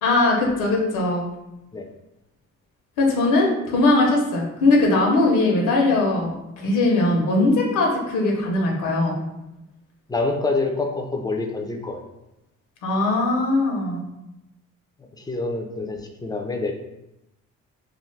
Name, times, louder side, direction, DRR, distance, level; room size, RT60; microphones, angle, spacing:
voice 1, 0.0-1.3 3.0-9.2 12.8-14.0, left 2 dB, 85° left, -1 dB, 0.8 m, -20 dB
voice 2, 10.1-12.0 15.2-16.7, left 3 dB, 15° left, 3 dB, 0.4 m, -26 dB
2.4 x 2.4 x 3.1 m, 0.90 s
cardioid pair, 90°, 30 cm